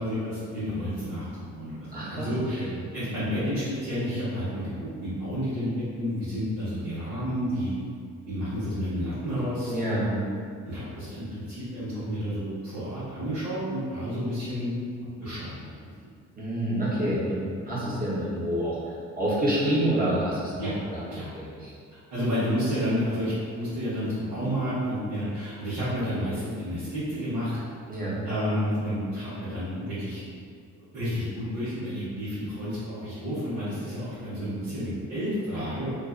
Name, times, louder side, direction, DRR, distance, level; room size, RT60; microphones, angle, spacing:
voice 1, 0.0-2.7 2.9-4.7 5.0-7.7 8.2-10.2 10.6-14.8 15.2-15.7 20.6-20.7 21.1-21.3 22.1-27.6 28.2-30.2 30.9-35.9, equal, 90° right, -13 dB, 0.9 m, -30 dB
voice 2, 1.9-2.3 2.6-2.7 9.7-10.0 16.4-18.8 19.2-20.6 20.9-21.0 21.3-21.7 27.9-28.2, right 1 dB, 30° right, -7 dB, 0.8 m, -27 dB
2.5 x 2.3 x 2.3 m, 2.2 s
cardioid pair, 90°, 30 cm